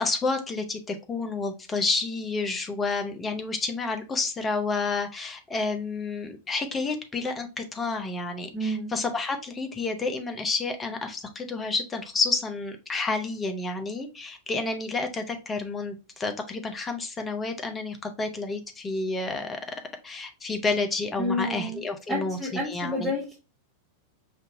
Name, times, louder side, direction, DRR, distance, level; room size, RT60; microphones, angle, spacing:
voice 1, 0.0-19.6 20.0-23.1, left 3 dB, 20° left, 5 dB, 0.7 m, -30 dB
voice 2, 8.5-8.9 21.2-21.8 22.1-23.4, left 1 dB, 5° right, -7 dB, 1.2 m, -29 dB
5.2 x 2.7 x 2.6 m, 0.30 s
figure-of-eight pair, 90°, 0 cm